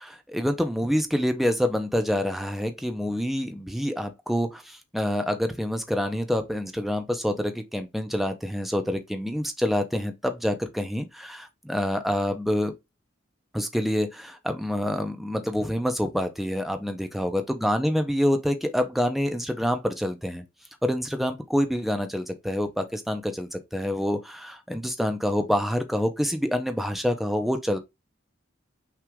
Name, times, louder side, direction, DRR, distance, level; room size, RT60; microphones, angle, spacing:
voice 1, 0.0-12.7 13.5-20.4 20.8-27.8, equal, ahead, 0.5 m, -27 dB
5.8 x 2.4 x 3.5 m
head